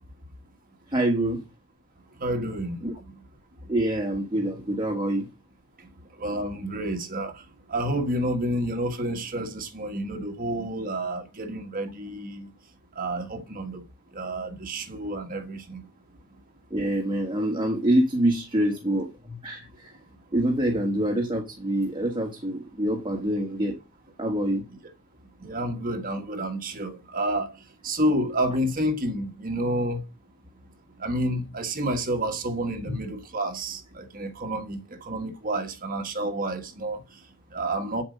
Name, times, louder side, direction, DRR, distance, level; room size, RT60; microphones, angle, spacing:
voice 1, 0.9-1.4 2.8-2.9 3.7-5.3 16.7-19.9 20.3-23.8 24.2-24.6, right 1 dB, 20° right, 1.4 m, -26 dB
voice 2, 2.2-2.9 3.6-3.7 5.8-12.5 12.9-13.9 14.1-15.8 24.7-24.8 25.4-30.0 31.0-38.0, right 1 dB, 40° right, 1.5 m, -30 dB
8.8 x 7.3 x 5.3 m
head